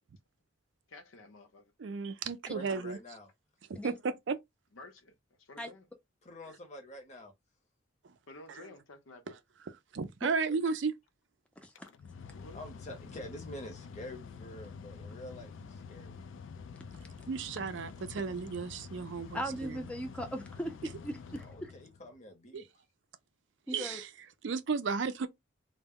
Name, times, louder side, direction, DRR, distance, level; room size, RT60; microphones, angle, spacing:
voice 1, 0.9-1.7 4.7-5.9 8.3-9.4 12.3-12.6, left 2 dB, 85° left, 0.7 m, -52 dB
voice 2, 1.8-3.0 3.7-4.4 8.5-8.7 9.3-9.4 9.9-10.9 17.3-19.8 22.5-22.6 23.7-24.1 24.4-25.3, right 5 dB, 65° right, 0.4 m, -34 dB
voice 3, 2.5-3.3 6.2-7.3 10.4-10.6 12.5-16.2 21.5-22.7, left 1 dB, 35° left, 0.7 m, -47 dB
Mechanical fan, 11.6-22.2, left 5 dB, 70° left, 0.3 m, -48 dB
voice 4, 19.3-21.7 23.7-24.0, equal, 5° left, 0.5 m, -38 dB
2.1 x 2.0 x 3.5 m
head